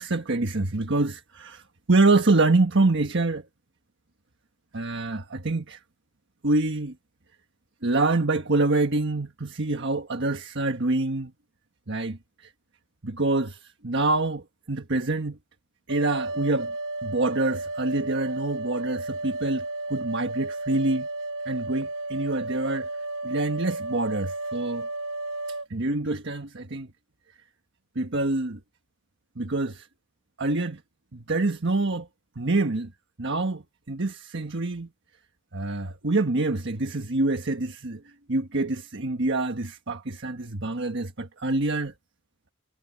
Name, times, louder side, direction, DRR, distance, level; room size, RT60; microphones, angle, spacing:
voice 1, 0.0-3.4 4.7-5.8 6.4-6.9 7.8-11.3 11.9-12.5 13.0-15.4 15.9-16.7 17.0-21.1 21.4-22.9 23.2-24.9 25.5-26.9 27.9-28.6 29.4-29.9 30.4-30.8 31.1-32.1 32.3-32.9 33.2-34.9 35.5-38.0 38.3-41.9, right 2 dB, 60° right, 1.4 m, -26 dB
sound 1, 15.9-25.7, right 2 dB, 75° right, 4.3 m, -33 dB
head